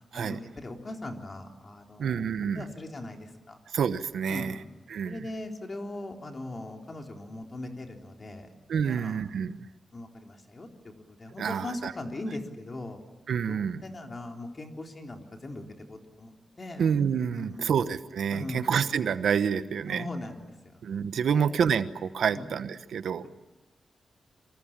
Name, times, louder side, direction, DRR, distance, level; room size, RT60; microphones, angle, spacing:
voice 1, 0.1-2.2 2.5-3.6 4.3-4.7 5.0-9.2 9.9-10.7 11.1-13.0 13.5-17.0 17.3-17.7 18.3-18.7 19.9-20.8 21.2-21.5 22.3-22.5, left 2 dB, 35° left, 3 dB, 3.8 m, -40 dB
voice 2, 2.0-2.7 3.7-4.6 4.9-5.2 8.7-9.6 11.4-11.9 13.3-13.8 16.8-20.1 20.8-23.3, right 7 dB, 85° right, 12 dB, 1.0 m, -28 dB
28.0 x 24.5 x 7.4 m, 1.1 s
cardioid pair, 95°, 0 cm